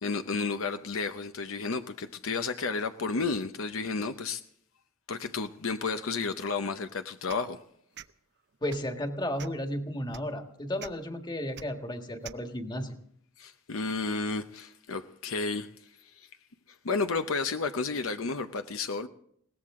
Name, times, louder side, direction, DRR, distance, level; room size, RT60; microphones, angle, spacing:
voice 1, 0.0-4.4 5.1-7.6 13.4-15.7 16.2-16.3 16.8-19.1, left 4 dB, 70° left, 0.8 m, -32 dB
sound 1, 7.3-7.5 7.9-8.1 8.7-8.9 9.4-9.7 10.1-10.2 10.8-10.9 11.5-11.7 12.2-12.4, right 9 dB, 55° right, 0.6 m, -44 dB
voice 2, 8.6-12.9, left 1 dB, 20° left, 1.7 m, -33 dB
21.5 x 18.0 x 3.7 m
head